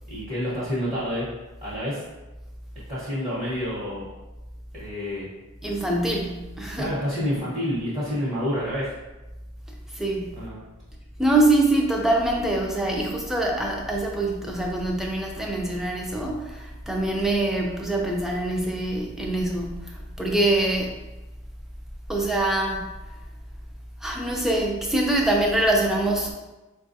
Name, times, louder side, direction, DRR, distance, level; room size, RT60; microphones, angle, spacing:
voice 1, 0.1-1.3 1.6-2.0 2.9-4.1 4.8-5.3 6.8-8.9 10.3-10.6, equal, 35° right, -10 dB, 1.0 m, -28 dB
voice 2, 5.6-6.9 9.9-10.5 11.2-21.0 22.1-23.0 24.0-26.3, right 2 dB, ahead, -1 dB, 0.4 m, -24 dB
4.4 x 2.3 x 2.6 m, 1.1 s
head